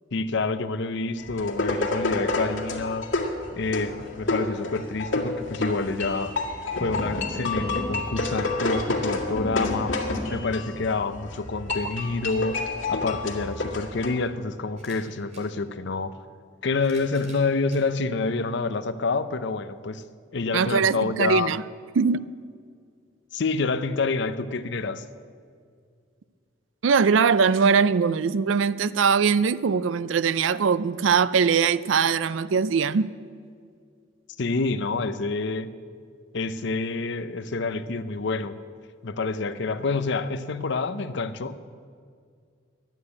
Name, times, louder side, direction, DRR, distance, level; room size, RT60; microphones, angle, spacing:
voice 1, 0.1-3.1 3.5-6.4 6.8-10.0 10.3-12.6 12.9-16.1 16.6-20.0 20.3-21.5 23.3-25.0 34.4-35.7 36.3-38.6 39.0-41.6, left 3 dB, 65° left, 13 dB, 0.7 m, -27 dB
sound 1, 1.2-14.1, left 2 dB, 85° left, 2.0 m, -29 dB
sound 2, 14.7-15.5 16.5-17.9 18.6-18.7 20.0-20.1, right 2 dB, 35° right, 2.7 m, -50 dB
voice 2, 20.5-21.6 22.0-22.3 26.8-33.1, right 6 dB, 85° right, 17 dB, 0.4 m, -21 dB
11.5 x 9.2 x 9.5 m, 2.1 s
head